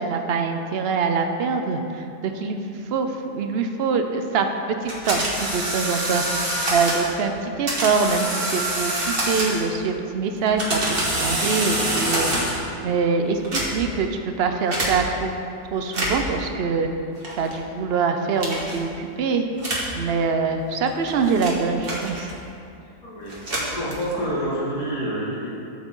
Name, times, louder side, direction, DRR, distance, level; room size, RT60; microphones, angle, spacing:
voice 1, 0.0-4.5 4.8-6.2 6.7-12.3 12.8-15.3 15.7-16.9 17.4-19.5 19.9-22.3, right 5 dB, 60° right, 5 dB, 0.7 m, -24 dB
sound 1, 4.9-7.1 7.7-9.8 10.4-12.7 13.4-14.0 14.7-14.9 15.8-16.3 17.2-17.6 18.4-18.8 19.6-19.9 20.7-22.5 23.2-24.3, right 1 dB, 35° right, 1.7 m, -26 dB
voice 2, 22.8-25.5, equal, 60° left, -7 dB, 2.7 m, -28 dB
12.0 x 7.4 x 3.8 m, 2.6 s
omnidirectional pair, 1.7 m